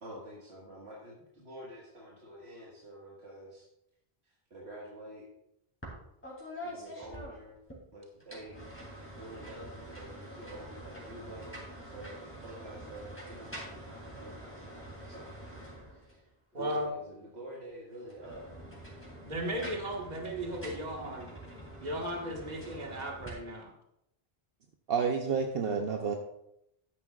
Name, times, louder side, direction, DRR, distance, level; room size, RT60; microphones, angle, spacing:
voice 1, 0.0-3.7 4.2-5.3 6.6-7.6 7.9-8.9 9.2-14.9 15.1-15.4 15.9-18.5, right 1 dB, 90° right, -5 dB, 2.0 m, -48 dB
sound 1, 5.8-6.0 6.2-7.8 8.2-16.3 18.0-23.3, equal, 10° left, 3.1 m, -46 dB
voice 2, 16.5-16.9 19.3-21.3 21.8-23.7, right 1 dB, 40° right, 0 dB, 1.7 m, -36 dB
voice 3, 24.9-26.2, right 6 dB, 65° right, 3 dB, 1.0 m, -29 dB
12.5 x 10.0 x 2.4 m, 0.80 s
omnidirectional pair, 1.1 m